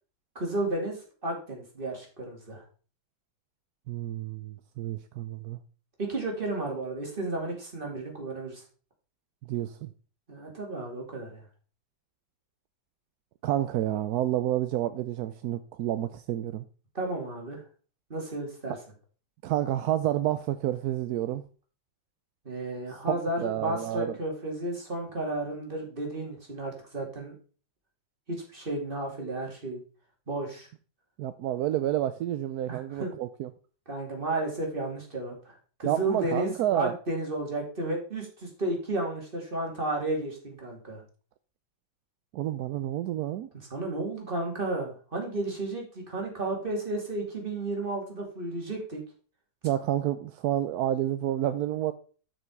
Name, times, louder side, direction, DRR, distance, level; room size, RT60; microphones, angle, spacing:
voice 1, 0.3-2.6 6.0-8.6 10.3-11.4 16.9-17.6 18.1-18.8 22.4-27.3 28.3-29.8 30.3-30.7 32.7-33.1 33.9-41.0 43.5-49.0, right 2 dB, 25° right, 2.7 m, -33 dB
voice 2, 3.9-5.6 9.5-9.9 13.4-16.6 19.4-21.4 23.1-24.2 31.2-33.5 35.8-36.9 42.3-43.5 49.6-51.9, right 12 dB, 75° right, 0.9 m, -29 dB
7.9 x 6.1 x 4.6 m
omnidirectional pair, 2.1 m